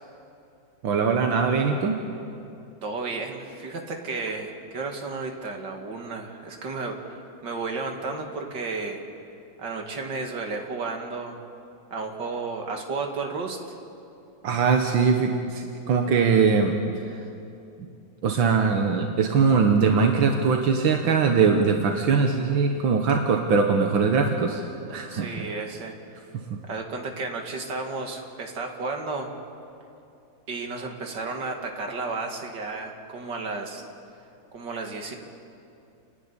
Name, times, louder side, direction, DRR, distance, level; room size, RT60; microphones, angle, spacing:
voice 1, 0.8-2.0 14.4-16.8 18.2-25.5 26.3-26.6, right 5 dB, 85° right, 3 dB, 2.0 m, -22 dB
voice 2, 2.8-9.0 9.6-11.4 11.9-13.7 25.1-26.2 26.7-29.3 30.5-33.8 34.5-35.2, right 3 dB, 65° right, 2 dB, 2.6 m, -33 dB
30.0 x 11.5 x 9.8 m, 2.6 s
omnidirectional pair, 2.1 m